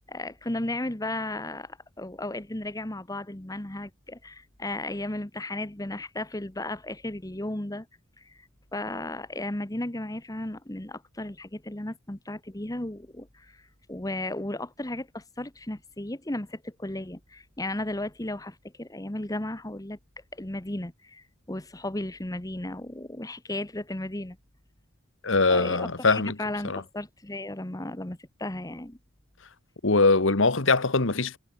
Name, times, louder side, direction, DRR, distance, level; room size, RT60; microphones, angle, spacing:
voice 1, 0.1-7.9 8.2-13.6 13.9-20.0 20.3-24.4 25.5-29.0, left 1 dB, 15° left, 1.2 m, -35 dB
voice 2, 25.2-26.3 26.6-26.8 29.8-31.4, left 3 dB, 65° left, 1.5 m, -22 dB
head